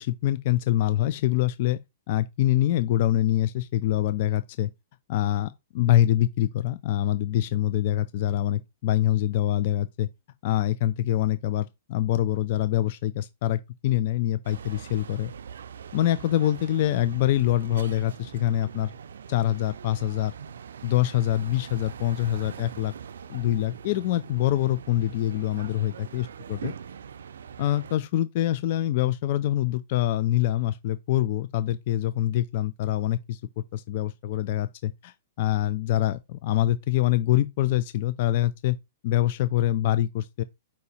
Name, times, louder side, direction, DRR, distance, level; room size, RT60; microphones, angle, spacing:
voice 1, 0.0-1.8 2.1-4.7 5.1-10.1 10.4-15.3 15.9-18.9 19.3-20.3 20.8-22.9 23.3-26.7 27.6-38.8 39.0-40.4, left 13 dB, 45° left, 0.3 m, -25 dB
sound 1, 14.4-28.0, right 7 dB, 85° right, 0.3 m, -42 dB
4.8 x 2.7 x 4.1 m
hypercardioid pair, 160°, 0 cm